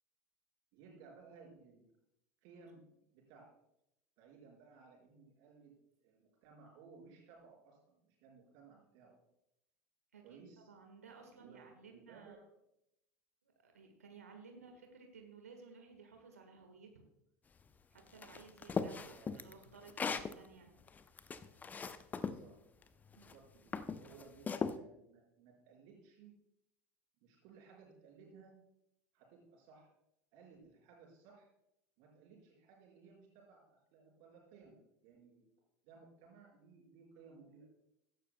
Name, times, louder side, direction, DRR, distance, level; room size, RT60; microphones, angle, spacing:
voice 1, 0.7-1.9 2.4-2.8 3.1-3.5 4.2-5.8 6.0-9.2 10.2-10.7 11.3-12.4 19.0-19.4 22.2-22.6 23.1-26.3 27.2-28.6 29.1-29.9 30.3-31.5 32.0-33.6 33.9-35.5 35.8-37.7, right 5 dB, 55° right, -1 dB, 4.8 m, -60 dB
voice 2, 10.7-12.4 13.4-17.1 17.9-20.7 23.1-23.3, right 5 dB, 80° right, 4 dB, 1.6 m, -57 dB
sound 1, 18.2-20.3 20.9-22.4 23.1-23.3 23.7-24.8, left 5 dB, 20° left, 0.6 m, -38 dB
16.0 x 12.5 x 2.3 m, 0.82 s
figure-of-eight pair, 80°, 8 cm